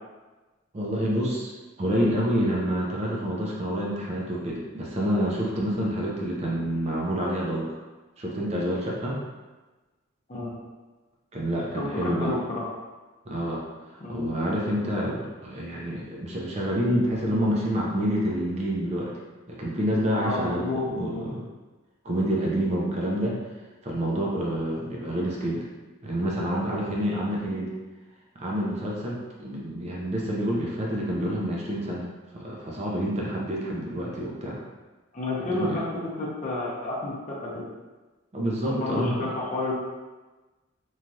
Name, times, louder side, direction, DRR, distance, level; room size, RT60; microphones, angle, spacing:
voice 1, 0.7-1.5 1.8-7.7 8.2-9.2 11.3-12.4 13.3-13.6 14.1-19.1 19.5-21.4 22.0-23.3 23.8-25.6 26.0-27.7 28.4-32.1 32.3-34.6 35.4-35.8 38.3-39.3, equal, 30° right, -4 dB, 0.5 m, -28 dB
voice 2, 11.8-12.7 14.0-14.3 20.2-21.2 35.1-35.9 36.2-37.6 38.7-39.7, left 2 dB, 35° left, -5 dB, 0.7 m, -30 dB
3.1 x 2.3 x 2.6 m, 1.2 s
head